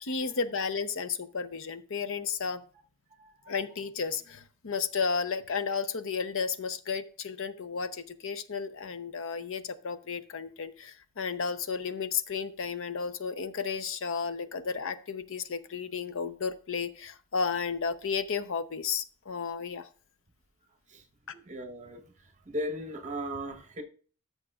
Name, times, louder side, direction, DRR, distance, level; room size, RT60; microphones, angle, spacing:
voice 1, 0.0-2.6 3.5-19.9, left 5 dB, 65° left, 12 dB, 0.7 m, -33 dB
voice 2, 3.2-3.5 20.9-21.0 21.5-22.0 22.5-23.8, equal, 35° right, 5 dB, 1.1 m, -37 dB
13.5 x 6.5 x 2.4 m, 0.42 s
head